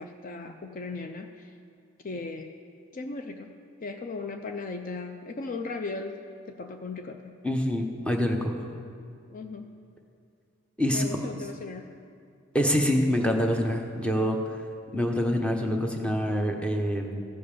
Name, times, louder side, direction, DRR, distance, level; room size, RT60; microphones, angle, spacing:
voice 1, 0.0-1.5 2.0-2.5 2.9-7.4 9.3-9.7 10.9-11.9, left 3 dB, 45° left, 6 dB, 0.5 m, -37 dB
voice 2, 7.4-8.5 10.8-11.1 12.5-14.6 14.9-17.2, equal, 5° left, 2 dB, 0.9 m, -26 dB
15.0 x 5.4 x 6.8 m, 2.5 s
head